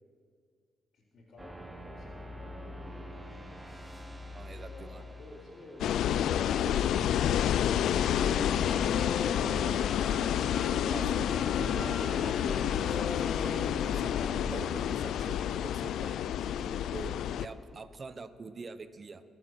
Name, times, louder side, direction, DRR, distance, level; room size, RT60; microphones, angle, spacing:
voice 1, 0.9-3.0 4.5-5.9, left 2 dB, 55° left, -9 dB, 3.8 m, -53 dB
sound 1, 1.4-9.9, left 1 dB, 15° right, 1.4 m, -47 dB
voice 2, 4.3-5.0 6.7-6.8 10.9-19.2, right 4 dB, 35° right, 12 dB, 0.8 m, -45 dB
sound 2, 5.8-17.5, left 10 dB, 75° left, 0.4 m, -29 dB
sound 3, 8.1-14.7, left 3 dB, 35° left, 2.1 m, -40 dB
22.5 x 8.6 x 6.1 m, 2.2 s
cardioid pair, 90°, 0 cm